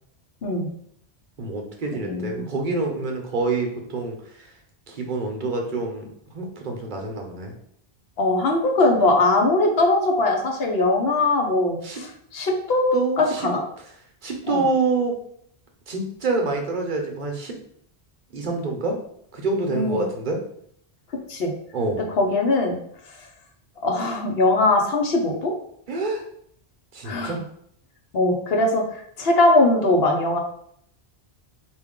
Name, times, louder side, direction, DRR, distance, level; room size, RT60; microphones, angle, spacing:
voice 1, 1.4-4.5 4.9-7.5 11.8-12.0 12.9-13.5 14.2-15.2 15.9-17.6 18.3-19.0 19.3-20.4 21.7-22.1 25.9-26.2 26.9-27.4, right 3 dB, 55° right, 2 dB, 0.8 m, -27 dB
voice 2, 2.1-2.5 8.2-13.6 14.5-14.6 19.7-20.0 21.3-21.5 22.1-22.8 23.1-23.3 23.8-25.5 27.0-27.4 28.1-30.4, left 2 dB, 70° left, 2 dB, 1.0 m, -21 dB
4.6 x 2.5 x 3.6 m, 0.69 s
omnidirectional pair, 1.1 m